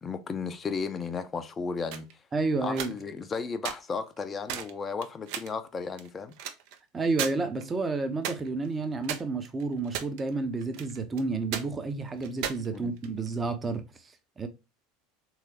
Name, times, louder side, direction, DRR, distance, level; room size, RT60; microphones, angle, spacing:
voice 1, 0.0-2.1 2.6-6.3 12.7-13.0, left 5 dB, 25° left, 0.5 m, -34 dB
sound 1, 1.9-2.1 2.6-3.3 3.6-3.8 4.2-4.3 4.5-4.7 5.0-5.5 6.0-6.8 7.1-7.3 7.6-7.7 8.2-8.7 9.0-10.3 10.6-11.2 11.5-11.6 12.2-13.3, right 9 dB, 55° right, 0.5 m, -35 dB
voice 2, 2.3-2.9 6.9-13.8 14.4-14.5, right 3 dB, 25° right, 0.7 m, -30 dB
3.6 x 3.2 x 2.7 m
figure-of-eight pair, 75°, 0 cm